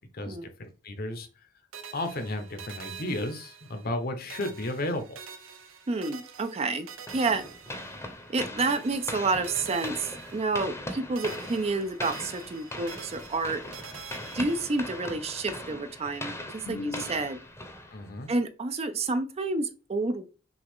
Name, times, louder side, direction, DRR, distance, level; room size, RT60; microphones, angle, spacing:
voice 1, 0.1-1.3 1.9-5.2 16.6-17.0 17.9-18.3, left 1 dB, 50° left, 7 dB, 0.8 m, -33 dB
sound 1, 1.7-4.0 4.3-8.3 8.6-10.9 11.2-15.0, right 7 dB, 90° right, 0.8 m, -46 dB
voice 2, 5.9-6.9 7.1-7.4 8.3-13.6 14.3-17.4 18.3-20.3, right 3 dB, 30° right, 9 dB, 0.4 m, -29 dB
sound 2, 7.1-18.3, left 1 dB, 15° left, 0.8 m, -40 dB
6.0 x 2.4 x 3.6 m, 0.34 s
head